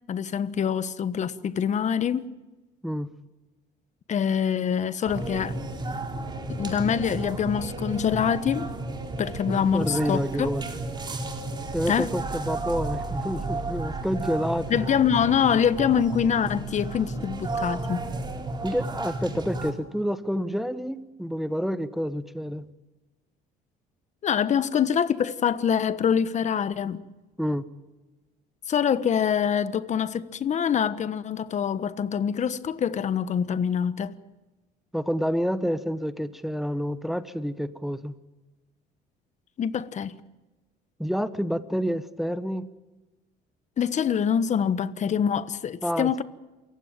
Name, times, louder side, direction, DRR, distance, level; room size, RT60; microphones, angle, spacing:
voice 1, 0.1-2.3 4.1-5.5 6.6-8.7 9.2-10.5 11.9-12.1 14.7-18.1 24.2-27.0 28.7-34.2 39.6-40.2 43.8-46.2, left 8 dB, 45° left, 1.3 m, -25 dB
sound 1, 5.1-19.7, right 2 dB, 25° right, 3.9 m, -33 dB
voice 2, 9.5-10.8 11.7-14.8 18.6-22.7 27.4-27.7 34.9-38.1 41.0-42.7 45.8-46.2, equal, ahead, 1.1 m, -28 dB
28.5 x 15.5 x 8.9 m
cardioid pair, 110°, 17 cm